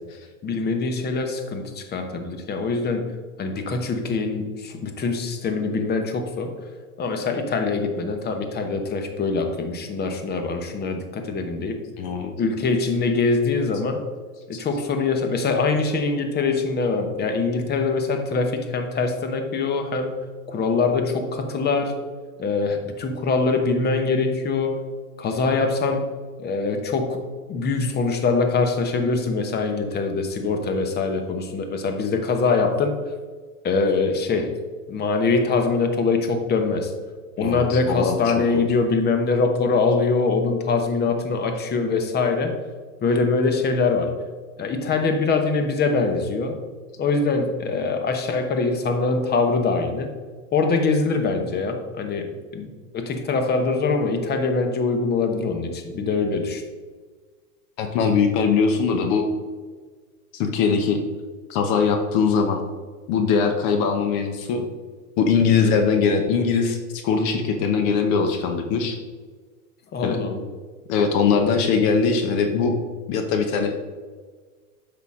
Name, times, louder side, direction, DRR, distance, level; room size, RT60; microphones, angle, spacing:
voice 1, 0.4-3.1 3.4-6.5 7.0-11.8 12.4-14.1 14.5-20.2 20.5-22.0 22.4-24.8 25.2-26.1 26.4-27.2 27.5-32.9 33.6-34.6 34.9-36.9 37.4-42.5 43.0-44.1 44.6-46.6 47.0-50.1 50.5-56.6 69.9-70.4, left 4 dB, 20° left, 6 dB, 1.0 m, -23 dB
voice 2, 12.0-12.3 37.4-38.2 57.8-59.3 60.3-61.0 61.5-62.6 63.1-64.6 65.2-66.8 67.0-69.0 70.0-70.2 70.9-72.8 73.1-73.8, left 5 dB, 45° left, 5 dB, 1.0 m, -21 dB
8.1 x 5.9 x 3.7 m, 1.5 s
hypercardioid pair, 115°, 45 cm